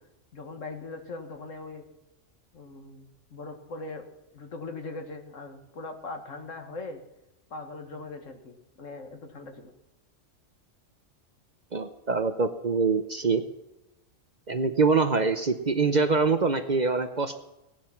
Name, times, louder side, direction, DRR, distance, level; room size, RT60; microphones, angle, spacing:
voice 1, 0.3-1.9 2.5-4.1 4.3-7.0 7.5-9.7, left 3 dB, 80° left, 5 dB, 1.9 m, -40 dB
voice 2, 11.7-13.4 14.5-17.4, right 4 dB, 40° right, 9 dB, 0.8 m, -24 dB
17.5 x 10.0 x 5.8 m, 0.95 s
omnidirectional pair, 1.3 m